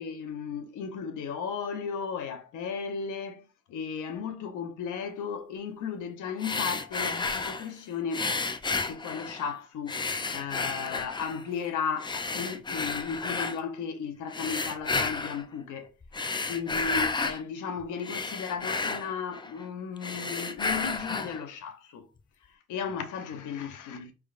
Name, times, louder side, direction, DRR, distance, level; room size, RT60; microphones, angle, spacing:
voice 1, 0.0-8.3 8.8-15.9 16.5-22.1 22.5-24.1, left 6 dB, 85° left, 0.9 m, -35 dB
sound 1, 6.4-7.7 8.1-9.5 9.9-11.4 12.0-13.6 14.3-15.4 16.0-17.4 17.8-19.7 20.0-21.4, left 4 dB, 15° left, 0.3 m, -32 dB
4.7 x 3.4 x 2.5 m
cardioid pair, 90°, 30 cm